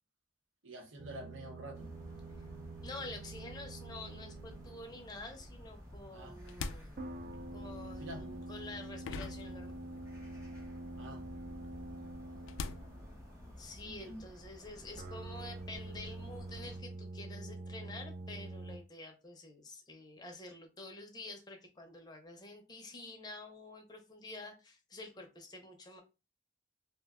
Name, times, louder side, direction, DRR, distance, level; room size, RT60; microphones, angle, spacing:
voice 1, 0.6-1.9 6.1-6.4 7.8-8.5 11.0-11.2 13.8-14.2, right 1 dB, 75° right, 0.8 m, -47 dB
sound 1, 1.0-5.3 7.0-13.3 15.0-18.8, right 2 dB, 45° right, 0.4 m, -46 dB
sound 2, 1.7-16.8, equal, 15° right, 0.8 m, -52 dB
voice 2, 2.8-7.0 7.5-9.7 13.6-26.0, left 2 dB, 20° left, 0.5 m, -48 dB
sound 3, 6.2-10.3 10.5-13.8, left 5 dB, 70° left, 0.3 m, -46 dB
2.4 x 2.1 x 3.5 m
head